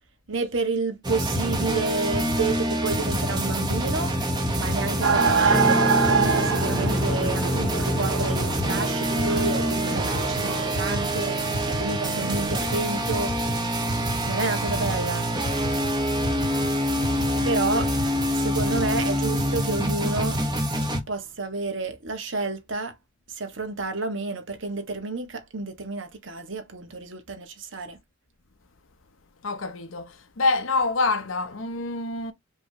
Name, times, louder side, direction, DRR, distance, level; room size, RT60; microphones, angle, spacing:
voice 1, 0.3-13.5 14.2-15.3 17.4-17.9 18.3-20.4 21.1-23.0 23.3-28.0, right 3 dB, 65° right, 1.4 m, -30 dB
sound 1, 1.0-21.0, equal, 20° right, 1.1 m, -26 dB
sound 2, 5.0-10.6, right 6 dB, 85° right, 0.8 m, -26 dB
sound 3, 5.5-19.5, equal, 15° left, 0.6 m, -34 dB
voice 2, 29.4-32.3, left 3 dB, 80° left, 0.8 m, -26 dB
5.3 x 3.0 x 2.9 m
head